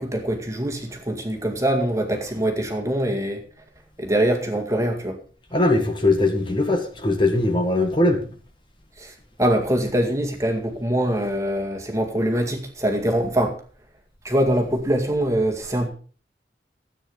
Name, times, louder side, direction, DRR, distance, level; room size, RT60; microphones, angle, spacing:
voice 1, 0.0-3.4 4.0-5.2 9.0-9.1 9.4-13.6 14.2-15.9, right 1 dB, 15° right, 2.1 m, -23 dB
voice 2, 5.5-8.2, left 2 dB, 25° left, 1.8 m, -20 dB
14.5 x 8.9 x 5.4 m
head